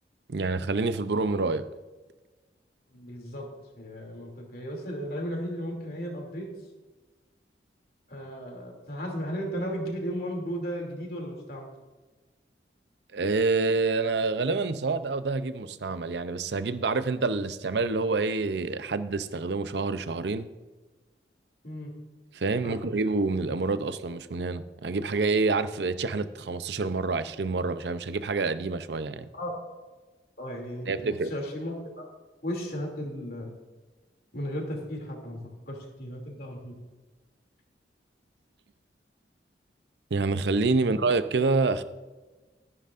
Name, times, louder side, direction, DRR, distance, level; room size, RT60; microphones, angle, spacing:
voice 1, 0.3-1.6 13.1-20.5 22.3-29.3 30.9-31.3 40.1-41.8, right 3 dB, 75° right, 13 dB, 0.6 m, -27 dB
voice 2, 2.9-3.5 3.8-6.5 8.1-11.7 21.6-21.9 22.6-22.9 29.3-29.5 30.4-32.0 32.4-33.5 34.3-36.8 40.7-41.0, equal, 55° left, 1 dB, 2.8 m, -35 dB
14.0 x 11.0 x 2.6 m, 1.2 s
head